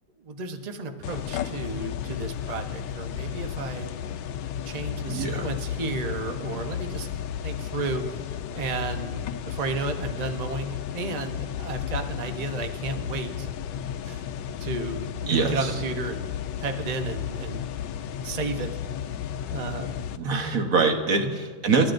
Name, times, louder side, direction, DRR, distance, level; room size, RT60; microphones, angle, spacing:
voice 1, 0.2-4.0 4.7-7.1 7.4-8.2 8.5-13.5 14.0-14.2 14.6-16.3 16.6-17.6 18.2-18.8 19.5-19.9 21.2-21.4, right 2 dB, 75° right, 5 dB, 0.3 m, -33 dB
sound 1, 1.0-20.2, left 9 dB, 80° left, 1.4 m, -33 dB
voice 2, 5.1-5.5 15.3-15.7 20.2-21.9, right 4 dB, 50° right, 4 dB, 1.4 m, -24 dB
29.0 x 12.0 x 2.6 m, 1.5 s
omnidirectional pair, 2.2 m